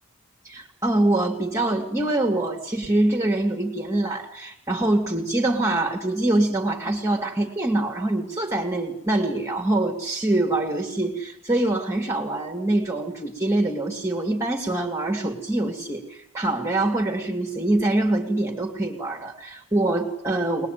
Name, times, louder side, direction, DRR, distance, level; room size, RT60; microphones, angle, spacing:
voice 1, 0.4-20.7, right 2 dB, 15° right, 1 dB, 2.6 m, -24 dB
23.5 x 20.5 x 9.3 m, 0.74 s
head